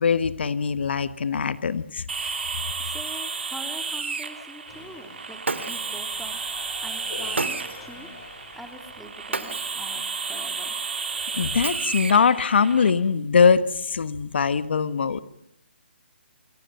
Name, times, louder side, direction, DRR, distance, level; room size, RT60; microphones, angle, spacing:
voice 1, 0.0-2.3 7.2-7.3 11.3-15.2, left 6 dB, 65° left, 13 dB, 1.5 m, -22 dB
sound 1, 2.1-12.9, right 5 dB, 70° right, 3.3 m, -32 dB
voice 2, 2.8-8.1 8.5-10.7, equal, ahead, 5 dB, 3.2 m, -44 dB
sound 2, 4.7-10.6, left 5 dB, 25° left, 6.5 m, -48 dB
Shatter, 5.4-6.1 7.4-7.9 9.3-9.9 11.6-12.3, right 3 dB, 90° right, 2.9 m, -32 dB
28.0 x 23.0 x 5.7 m, 0.75 s
hypercardioid pair, 150°, 6 cm